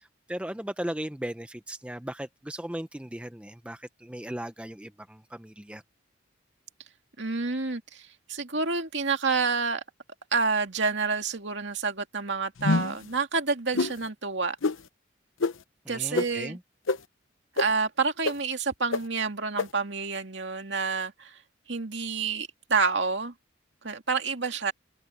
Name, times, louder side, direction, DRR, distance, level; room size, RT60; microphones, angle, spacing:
voice 1, 0.0-5.8 15.9-16.6, right 1 dB, 5° right, 0.5 m, -37 dB
voice 2, 7.2-9.8 10.3-14.6 15.9-16.6 17.6-21.4 21.7-23.3 23.8-24.7, right 4 dB, 60° right, 2.4 m, -28 dB
sound 1, 12.6-13.0 13.7-13.9 14.6-14.8 15.4-15.5 16.1-16.3 16.9-17.0 17.6-17.7 18.2-18.3 18.9-19.0 19.6-19.7, left 3 dB, 80° left, 0.9 m, -25 dB
head